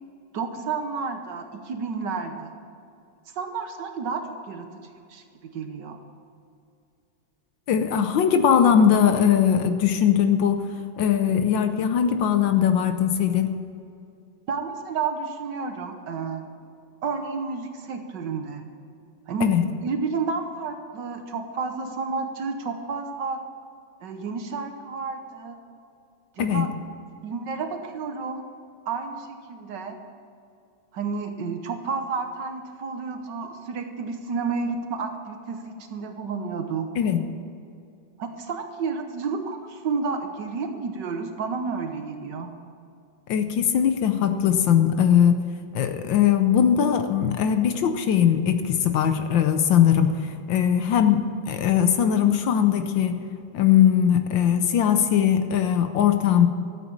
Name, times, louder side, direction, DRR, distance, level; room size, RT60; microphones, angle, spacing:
voice 1, 0.3-2.5 3.3-5.2 5.5-6.0 14.5-16.5 17.0-18.6 19.3-19.5 19.8-23.4 24.0-25.6 26.3-26.7 27.2-28.4 28.9-30.0 30.9-36.9 38.2-42.5, right 5 dB, 60° right, 6 dB, 1.5 m, -31 dB
voice 2, 7.7-10.7 11.0-13.5 19.4-19.6 26.4-26.7 37.0-37.2 43.3-45.4 45.7-53.2 53.5-56.5, left 9 dB, 70° left, 8 dB, 1.4 m, -20 dB
13.0 x 8.2 x 7.3 m, 2.5 s
omnidirectional pair, 2.3 m